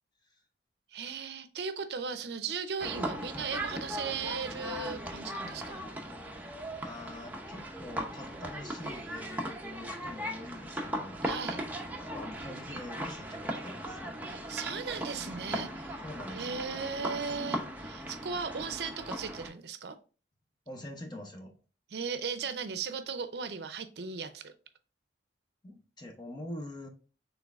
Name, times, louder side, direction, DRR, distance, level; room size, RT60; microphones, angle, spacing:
voice 1, 0.9-5.9 11.2-11.7 14.3-16.0 16.3-20.0 21.9-24.5, right 5 dB, 65° right, 10 dB, 0.5 m, -37 dB
sound 1, 2.8-19.5, right 1 dB, 10° right, 0.6 m, -38 dB
voice 2, 3.0-3.3 6.8-11.2 12.1-14.2 16.0-16.6 20.7-21.5 25.6-26.9, left 1 dB, 25° left, 2 dB, 0.8 m, -44 dB
6.2 x 3.4 x 2.4 m, 0.35 s
head